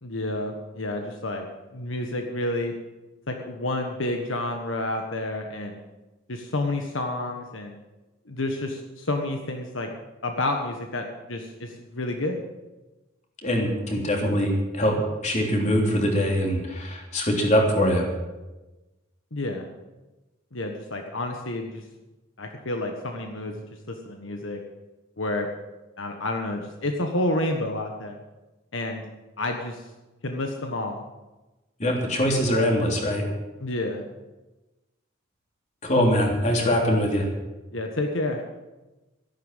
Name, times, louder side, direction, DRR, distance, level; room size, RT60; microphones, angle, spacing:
voice 1, 0.0-1.5 1.7-2.7 3.3-5.8 6.3-7.7 8.3-9.9 10.2-12.4 19.3-19.6 20.5-21.8 22.4-24.6 25.2-25.5 26.0-28.2 28.7-29.0 29.4-29.9 30.2-31.0 33.6-34.1 37.7-38.4, left 2 dB, 75° left, 3 dB, 1.5 m, -29 dB
voice 2, 13.4-15.0 15.2-18.1 31.8-33.2 35.8-37.3, equal, 35° left, 0 dB, 3.3 m, -23 dB
13.5 x 11.5 x 7.4 m, 1.1 s
head